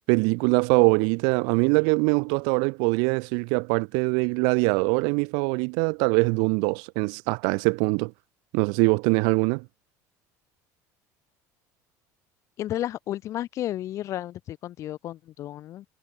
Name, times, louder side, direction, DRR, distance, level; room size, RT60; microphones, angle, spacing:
voice 1, 0.1-8.1 8.5-9.6, right 38 dB, 80° right, 1.0 m, -23 dB
voice 2, 12.6-15.9, left 13 dB, 45° left, 2.0 m, -32 dB
cardioid pair, 150°, 7 cm